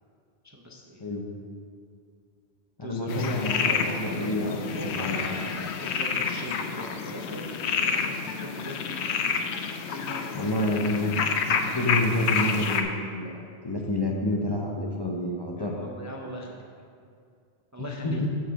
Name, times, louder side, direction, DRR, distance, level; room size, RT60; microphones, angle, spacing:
voice 1, 0.4-1.0 2.8-9.1 9.9-10.4 15.5-16.6 17.7-18.3, equal, 20° right, -1 dB, 0.5 m, -40 dB
voice 2, 2.8-5.2 10.3-11.2 11.5-15.7 17.8-18.3, left 1 dB, 25° left, -1 dB, 0.6 m, -29 dB
sound 1, 3.1-12.8, left 6 dB, 85° left, 0.9 m, -29 dB
7.5 x 4.4 x 6.8 m, 2.3 s
omnidirectional pair, 1.1 m